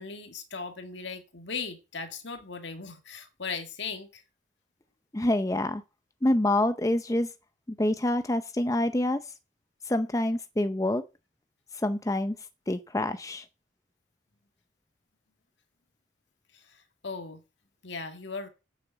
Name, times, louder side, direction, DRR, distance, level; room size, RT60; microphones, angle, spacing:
voice 1, 0.0-4.2 16.5-17.4 17.8-18.5, left 4 dB, 65° left, 2.0 m, -38 dB
voice 2, 5.1-5.8 6.2-7.3 7.7-9.3 9.8-11.0 11.7-12.3 12.7-13.5, left 1 dB, 15° left, 0.6 m, -26 dB
9.0 x 7.0 x 8.1 m
head